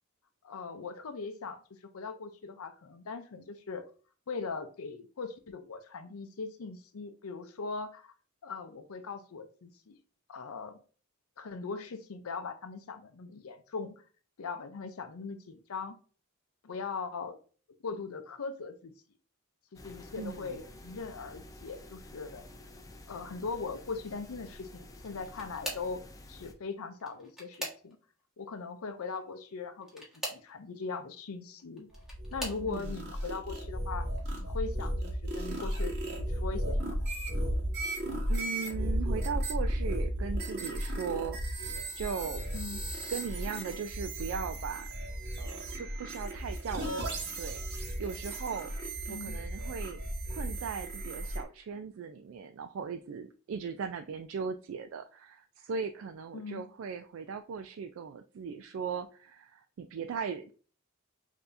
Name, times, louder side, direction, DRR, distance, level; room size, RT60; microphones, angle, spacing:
voice 1, 0.4-1.6 1.9-3.8 4.3-8.1 8.4-10.0 10.3-10.8 11.4-13.9 14.4-16.0 16.6-17.4 17.8-18.9 19.7-22.5 23.1-26.0 26.3-28.0 28.4-30.0 30.3-31.9 32.3-34.1 34.4-37.1 42.5-42.9 49.1-49.4 56.3-56.7, left 4 dB, 85° left, 8 dB, 0.6 m, -40 dB
sound 1, 19.7-26.5, left 1 dB, 15° left, 0.4 m, -50 dB
voice 2, 20.2-20.6 32.7-32.9 38.3-41.7 42.0-42.6 43.1-44.9 45.4-50.0 50.3-60.5, right 6 dB, 65° right, 7 dB, 0.3 m, -38 dB
sound 2, 24.9-26.0 26.9-28.2 29.8-30.5 31.6-32.7 33.4-33.8 34.2-34.3 35.7-35.8, equal, ahead, 1.4 m, -41 dB
sound 3, 31.9-51.4, right 1 dB, 50° right, 1.3 m, -35 dB
6.6 x 2.7 x 2.6 m, 0.39 s
head